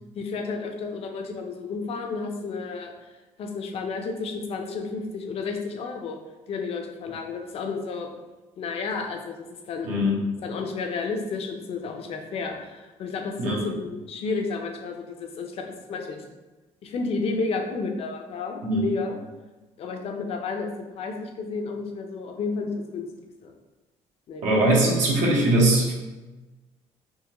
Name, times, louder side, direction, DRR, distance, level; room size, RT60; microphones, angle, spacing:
voice 1, 0.2-2.9 3.4-6.2 6.5-8.1 8.6-10.0 10.4-16.2 16.8-19.2 19.8-20.7 20.9-23.1 23.4-23.5 24.3-24.4, left 4 dB, 50° left, 3 dB, 0.5 m, -31 dB
voice 2, 9.8-10.2 13.4-13.7 18.6-18.8 24.4-25.9, right 1 dB, 85° right, -4 dB, 1.1 m, -21 dB
3.6 x 2.7 x 2.9 m, 1.2 s
cardioid pair, 130°, 12 cm